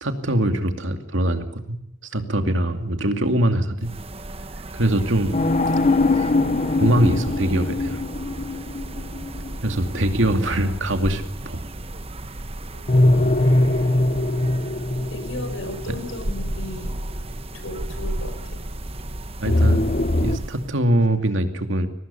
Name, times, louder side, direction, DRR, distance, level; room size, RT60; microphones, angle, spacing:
voice 1, 0.0-1.6 2.1-3.9 4.7-5.4 6.8-8.0 9.6-11.6 19.4-19.8 20.2-21.9, right 1 dB, 70° right, 6 dB, 2.6 m, -22 dB
sound 1, 3.8-20.8, right 1 dB, 30° right, 1.2 m, -34 dB
sound 2, 5.3-10.4 12.9-16.9 19.5-20.4, left 2 dB, 35° left, 0.9 m, -21 dB
voice 2, 15.1-17.0 17.5-18.6, left 1 dB, 75° left, 8 dB, 5.7 m, -35 dB
23.5 x 18.5 x 8.4 m, 0.81 s
head